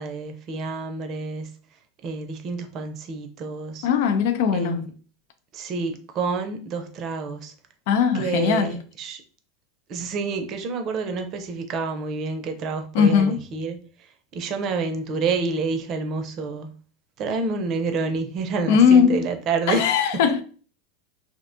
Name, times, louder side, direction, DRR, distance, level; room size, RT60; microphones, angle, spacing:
voice 1, 0.0-1.5 2.0-3.9 4.5-4.9 5.5-7.5 8.1-9.2 9.9-16.7 17.2-19.8 20.1-20.2, right 4 dB, 45° right, 0.5 m, -28 dB
voice 2, 3.8-4.8 7.9-8.8 12.9-13.4 18.7-19.3 19.7-20.4, left 7 dB, 70° left, 0.3 m, -19 dB
2.5 x 2.2 x 2.6 m
hypercardioid pair, 100°, 0 cm